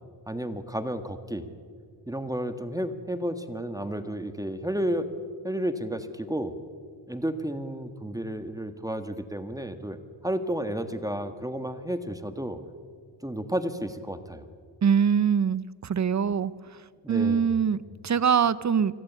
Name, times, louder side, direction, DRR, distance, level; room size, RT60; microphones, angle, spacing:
voice 1, 0.3-1.5 2.1-5.1 5.4-6.5 7.1-10.0 10.2-12.6 13.2-14.4 17.0-17.5, right 1 dB, 10° right, 9 dB, 1.7 m, -32 dB
voice 2, 14.8-16.5 17.1-18.9, right 7 dB, 40° right, 17 dB, 0.9 m, -23 dB
25.5 x 16.5 x 8.4 m, 2.1 s
cardioid pair, 70°, 45 cm